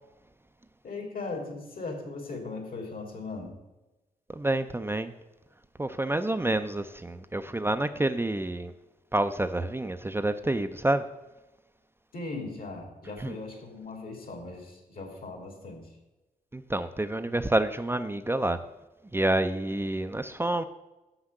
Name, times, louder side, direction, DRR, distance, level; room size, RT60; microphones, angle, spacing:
voice 1, 0.8-3.5 12.1-15.8, left 3 dB, 65° left, 2 dB, 2.6 m, -38 dB
voice 2, 4.3-5.1 5.8-8.7 9.1-11.0 13.2-13.4 16.5-18.6 19.1-20.6, right 1 dB, 15° right, 9 dB, 0.5 m, -28 dB
7.2 x 6.0 x 6.5 m, 1.0 s
cardioid pair, 70°, 16 cm